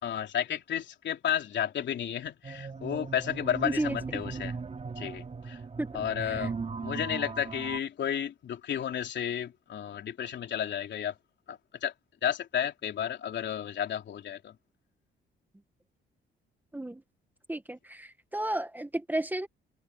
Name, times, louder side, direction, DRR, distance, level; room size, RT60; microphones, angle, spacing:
voice 1, 0.0-4.6 4.9-5.6 5.9-6.5 6.8-11.1 11.5-11.9 12.2-14.5, left 9 dB, 65° left, 3.4 m, -32 dB
sound 1, 2.4-7.8, right 4 dB, 35° right, 3.5 m, -38 dB
voice 2, 3.6-4.0 5.8-6.5 16.7-17.0 17.5-19.5, right 1 dB, 10° right, 1.4 m, -33 dB
cardioid pair, 90°, 20 cm